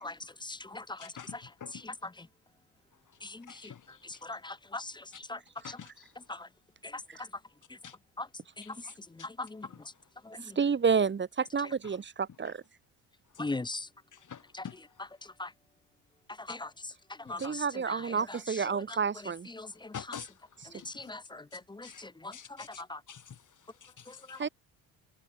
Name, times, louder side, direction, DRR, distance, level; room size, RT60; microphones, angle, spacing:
voice 1, 0.0-1.1 1.8-1.9 3.2-3.7 4.0-5.4 5.7-5.8 6.3-6.5 6.8-7.0 8.2-8.3 8.7-8.8 9.1-9.7 10.2-10.6 13.4-13.9 15.4-15.5 16.4-16.7 17.2-18.0 18.3-18.6 19.5-19.9 20.7-23.0 24.1-24.4, left 2 dB, 10° left, 0.6 m, -40 dB
voice 2, 1.0-1.9 3.2-4.2 5.1-5.2 5.6-6.1 7.8-8.0 8.6-9.3 9.7-9.8 14.1-14.8 17.3-17.5 19.9-21.1 21.5-22.0 22.3-24.5, left 8 dB, 45° left, 3.6 m, -48 dB
voice 3, 10.4-12.6 17.4-19.5 24.4-24.5, right 6 dB, 25° right, 1.0 m, -30 dB
supercardioid pair, 60°, 42 cm